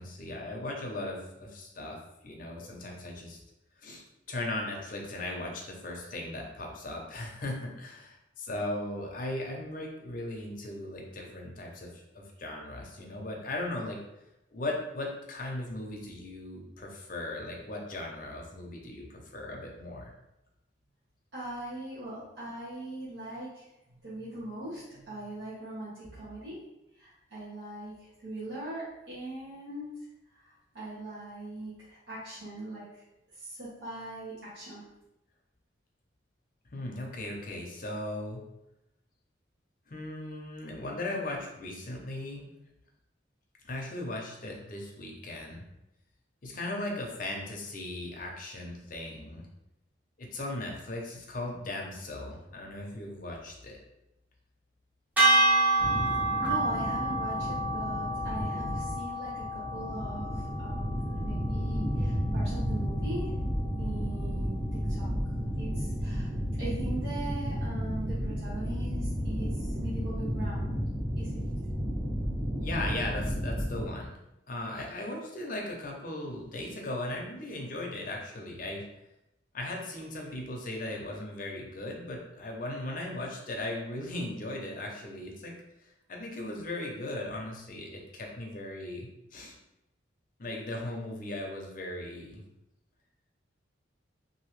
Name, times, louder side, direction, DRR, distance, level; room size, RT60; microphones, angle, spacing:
voice 1, 0.0-2.0 2.2-3.4 3.8-14.0 14.5-20.1 36.7-38.4 39.9-42.5 43.6-45.6 46.4-49.5 50.2-53.8 72.6-74.1 74.5-78.9 79.5-85.5 86.1-89.5 90.4-92.4, left 1 dB, 45° left, 0 dB, 0.6 m, -37 dB
voice 2, 21.3-23.7 24.0-26.6 27.0-29.9 30.3-33.0 33.4-34.8 56.4-63.3 63.8-65.1 65.6-66.3 66.6-70.7 71.2-71.4, right 1 dB, 70° right, -11 dB, 1.1 m, -41 dB
sound 1, 55.2-61.5, right 2 dB, 10° right, 0.6 m, -28 dB
sound 2, 55.8-73.9, equal, 30° right, 1.2 m, -32 dB
2.8 x 2.6 x 3.1 m, 0.90 s
head